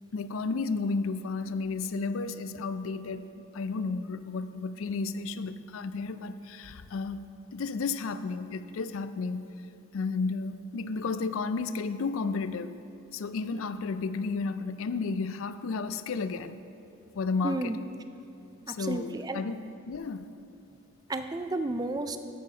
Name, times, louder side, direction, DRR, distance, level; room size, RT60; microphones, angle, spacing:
voice 1, 0.1-3.3 3.5-7.2 7.5-9.5 9.9-12.7 13.1-16.6 17.1-17.8 18.7-19.6 19.9-20.3, left 4 dB, 70° left, 13 dB, 0.4 m, -32 dB
voice 2, 17.4-17.8 18.7-19.4 21.1-22.2, right 2 dB, 20° right, 9 dB, 0.3 m, -32 dB
14.0 x 6.6 x 3.9 m, 2.8 s
head